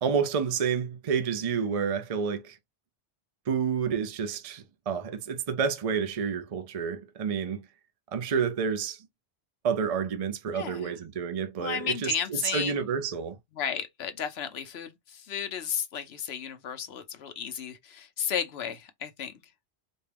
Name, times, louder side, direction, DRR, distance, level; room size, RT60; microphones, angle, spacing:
voice 1, 0.0-2.6 3.5-7.6 8.1-9.1 9.6-13.4, right 6 dB, 40° right, 0.6 m, -29 dB
voice 2, 10.5-11.0 11.6-12.9 13.5-19.5, left 8 dB, 70° left, 1.0 m, -34 dB
4.3 x 2.2 x 3.4 m
omnidirectional pair, 1.1 m